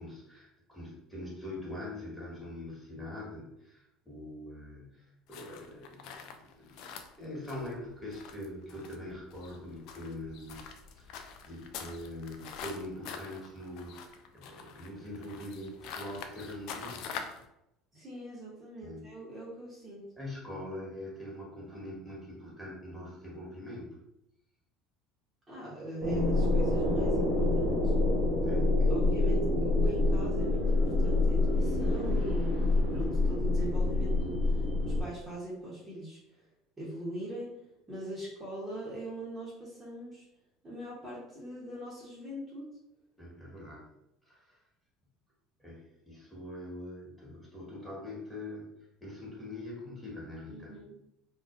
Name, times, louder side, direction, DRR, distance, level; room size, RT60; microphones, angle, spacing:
voice 1, 0.0-6.9 7.2-10.6 11.0-17.3 18.8-19.0 20.2-23.9 28.5-29.0 31.9-32.0 43.2-43.8 44.3-44.5 45.6-48.7 49.0-50.8, left 1 dB, 5° left, -6 dB, 1.4 m, -43 dB
sound 1, 5.3-17.5, left 6 dB, 65° left, 0.3 m, -45 dB
voice 2, 17.9-20.1 25.5-27.9 28.9-36.4 36.8-37.6 37.9-40.2 40.6-42.7 50.5-51.0, right 1 dB, 25° right, -7 dB, 0.9 m, -41 dB
sound 2, 26.0-35.0, left 2 dB, 65° right, 0.9 m, -27 dB
2.4 x 2.3 x 2.4 m, 0.83 s
supercardioid pair, 90°, 0 cm